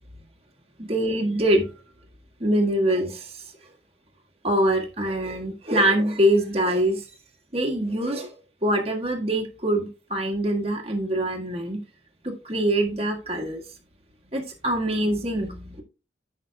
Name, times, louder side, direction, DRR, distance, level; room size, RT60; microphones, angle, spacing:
voice 1, 0.8-1.7 2.4-3.4 4.4-7.1 7.5-11.8 12.2-13.6 14.3-15.8, right 1 dB, 35° right, 0 dB, 1.7 m, -24 dB
14.0 x 5.9 x 2.3 m, 0.33 s
head